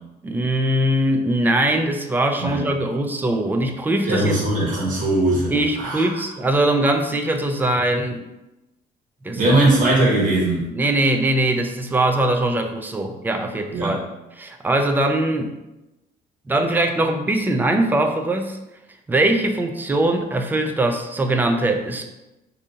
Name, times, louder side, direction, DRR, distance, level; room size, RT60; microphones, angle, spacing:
voice 1, 0.2-4.4 5.5-8.2 9.2-9.6 10.7-14.0 14.4-15.5 16.5-18.6 19.1-22.0, right 1 dB, 10° right, 5 dB, 0.3 m, -21 dB
voice 2, 4.0-6.1 9.3-10.7 13.7-14.0, right 1 dB, 50° right, -4 dB, 1.3 m, -20 dB
2.8 x 2.6 x 3.5 m, 0.97 s
cardioid pair, 110°, 17 cm